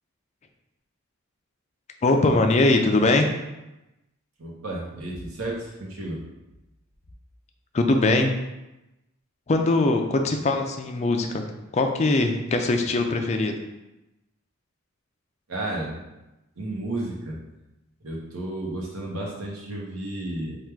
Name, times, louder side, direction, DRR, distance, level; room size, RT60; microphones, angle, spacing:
voice 1, 2.0-3.3 7.7-8.3 9.5-11.4 11.7-13.5, left 2 dB, 30° left, 4 dB, 0.3 m, -21 dB
voice 2, 4.4-6.2 15.5-16.0 16.6-17.4 18.0-20.6, right 1 dB, 85° right, -3 dB, 0.9 m, -32 dB
3.5 x 2.4 x 4.4 m, 0.97 s
head